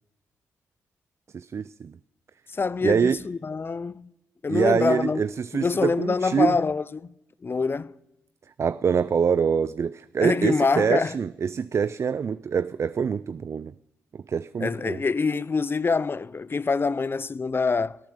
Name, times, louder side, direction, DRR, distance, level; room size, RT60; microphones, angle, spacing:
voice 1, 1.3-2.0 2.8-3.2 4.5-6.6 8.6-13.7 14.1-15.0, right 6 dB, 45° right, 0.3 m, -25 dB
voice 2, 2.5-4.1 4.4-5.2 5.5-7.1 7.4-8.0 10.2-11.1 14.6-18.0, left 4 dB, 35° left, 0.5 m, -25 dB
18.5 x 8.6 x 4.9 m
hypercardioid pair, 40°, 7 cm